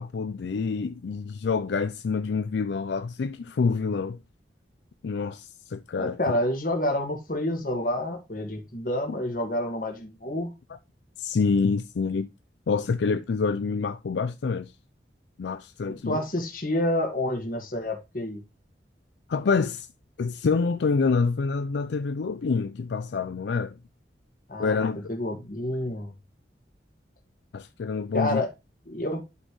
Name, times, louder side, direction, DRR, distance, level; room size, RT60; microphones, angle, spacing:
voice 1, 0.0-4.2 5.0-6.2 11.2-12.3 12.7-14.7 15.4-16.2 19.3-19.9 20.2-23.8 24.6-25.1 27.5-28.4, left 4 dB, 75° left, 0.4 m, -27 dB
voice 2, 6.0-10.5 15.9-18.4 24.5-26.1 28.1-28.5 28.9-29.2, left 1 dB, 50° left, 1.7 m, -29 dB
11.5 x 4.3 x 3.1 m
head